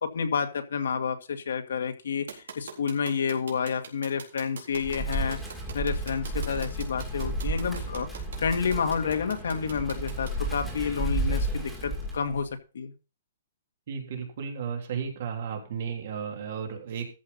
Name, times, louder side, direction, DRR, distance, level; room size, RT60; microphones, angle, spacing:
voice 1, 0.0-5.4 5.7-12.9, left 6 dB, 80° left, 6 dB, 2.0 m, -30 dB
sound 1, 2.3-10.3, right 6 dB, 75° right, 3.9 m, -42 dB
Wind, 4.7-12.5, right 1 dB, 5° right, 2.3 m, -32 dB
voice 2, 13.9-17.1, right 7 dB, 45° right, 2 dB, 3.2 m, -34 dB
14.0 x 5.7 x 5.6 m, 0.33 s
hypercardioid pair, 175°, 0 cm